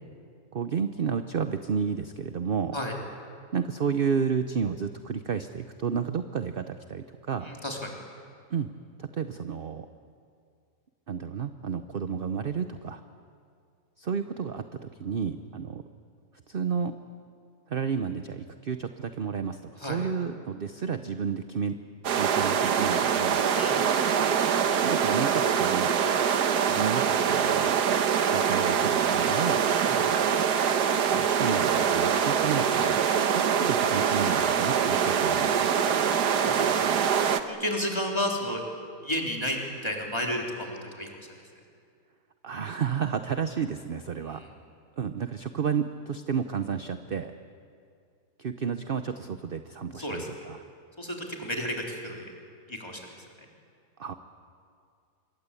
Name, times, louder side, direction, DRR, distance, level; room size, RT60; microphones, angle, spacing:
voice 1, 0.5-2.8 3.5-7.5 8.5-8.7 9.0-9.9 11.1-13.0 14.0-15.8 16.5-16.9 17.7-21.8 22.1-23.4 24.8-25.9 26.6-27.8 28.3-29.6 31.1-33.1 33.3-35.7 42.4-44.4 45.0-47.3 48.4-50.6 54.0-54.1, right 6 dB, 45° right, 9 dB, 0.8 m, -31 dB
voice 2, 7.4-8.0 19.8-20.0 23.5-23.9 29.9-30.0 32.5-32.7 35.7-36.0 36.4-37.0 37.4-38.6 39.0-41.1 44.2-44.5 49.9-50.3 51.0-52.3 52.7-53.0, equal, 15° left, 0 dB, 3.6 m, -32 dB
sound 1, 22.0-37.4, right 7 dB, 85° right, 1.6 m, -24 dB
26.0 x 22.5 x 8.4 m, 2.3 s
omnidirectional pair, 1.7 m